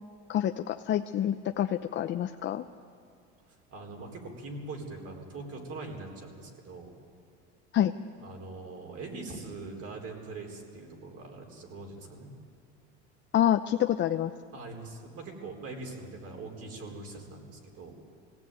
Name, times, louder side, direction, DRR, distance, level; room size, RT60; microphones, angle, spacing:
voice 1, 0.3-2.6 7.7-7.9 13.3-14.3, left 11 dB, 35° left, 7 dB, 0.7 m, -27 dB
voice 2, 3.4-6.9 8.2-12.3 14.5-17.9, right 3 dB, 45° right, 1 dB, 4.4 m, -42 dB
21.0 x 17.0 x 9.2 m, 2.3 s
supercardioid pair, 115°, 33 cm